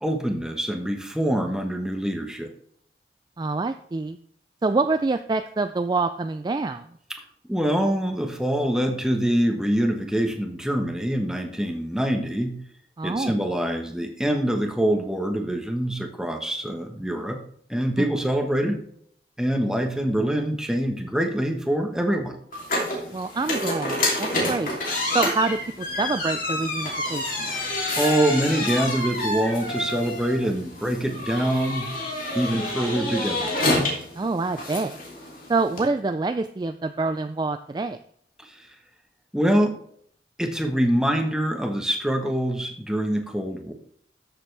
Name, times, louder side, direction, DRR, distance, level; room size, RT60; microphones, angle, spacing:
voice 1, 0.0-2.5 7.1-7.2 7.5-12.6 13.0-17.4 17.7-18.8 19.4-22.3 28.0-32.0 32.3-33.5 38.4-38.7 39.3-39.8 40.4-43.7, right 1 dB, 5° right, 3 dB, 1.1 m, -25 dB
voice 2, 3.4-4.2 4.6-6.8 13.0-13.3 23.1-24.8 25.1-27.6 34.2-35.0 35.5-38.0, right 3 dB, 25° right, 9 dB, 0.3 m, -26 dB
sound 1, 22.5-35.9, left 1 dB, 50° left, 2.9 m, -28 dB
13.0 x 6.9 x 3.4 m, 0.64 s
head